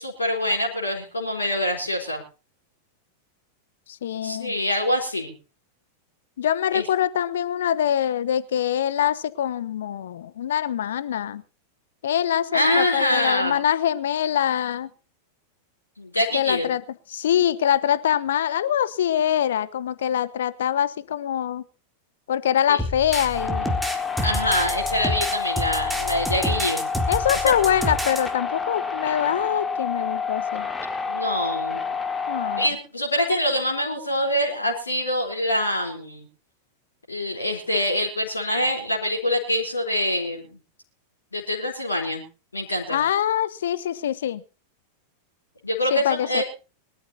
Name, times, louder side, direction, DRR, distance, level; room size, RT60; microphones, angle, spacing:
voice 1, 0.0-2.2 4.2-5.3 6.7-6.8 12.5-13.6 16.0-16.7 22.7-22.8 24.2-26.9 27.4-27.5 31.1-32.0 32.6-36.2 37.1-40.5 41.3-42.2 42.5-43.0 45.6-46.4, left 1 dB, 80° left, 0 dB, 3.8 m, -25 dB
voice 2, 3.9-4.6 6.4-11.4 12.0-14.9 16.3-16.8 17.1-21.6 22.3-23.8 27.1-30.7 32.3-32.6 42.9-44.4 45.9-46.4, left 10 dB, 60° left, 18 dB, 1.0 m, -24 dB
sound 1, 22.8-28.2, equal, ahead, 3.6 m, -28 dB
sound 2, 23.3-32.7, left 5 dB, 15° left, 2.6 m, -28 dB
23.0 x 13.5 x 2.8 m, 0.34 s
figure-of-eight pair, 90°, 0 cm